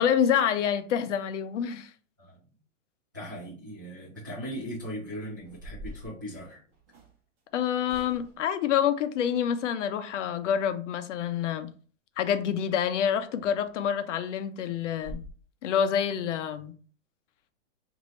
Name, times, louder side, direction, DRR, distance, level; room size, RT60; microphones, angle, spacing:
voice 1, 0.0-1.9 7.5-11.7 12.2-15.2 15.6-16.7, left 8 dB, 65° left, 0.6 m, -27 dB
voice 2, 3.1-6.6, equal, 15° right, 0.3 m, -38 dB
sound 1, 5.4-7.1 7.8-8.5 13.0-13.2 13.6-13.7 14.1-14.2 14.6-14.7 15.0-15.3, equal, 35° right, 1.1 m, -45 dB
4.1 x 2.6 x 3.0 m
supercardioid pair, 170°, 39 cm